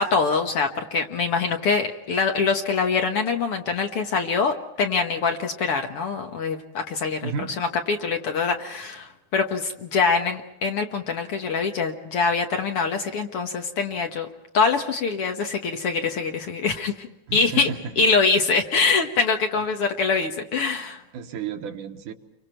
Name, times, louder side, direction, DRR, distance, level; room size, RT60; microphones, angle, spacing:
voice 1, 0.0-7.3 7.6-14.3 14.5-17.1 17.3-21.0, left 4 dB, 55° left, 4 dB, 1.8 m, -24 dB
voice 2, 7.2-7.6 17.3-18.1 21.1-22.1, right 6 dB, 85° right, 5 dB, 2.8 m, -32 dB
30.0 x 24.5 x 4.5 m, 0.89 s
omnidirectional pair, 3.5 m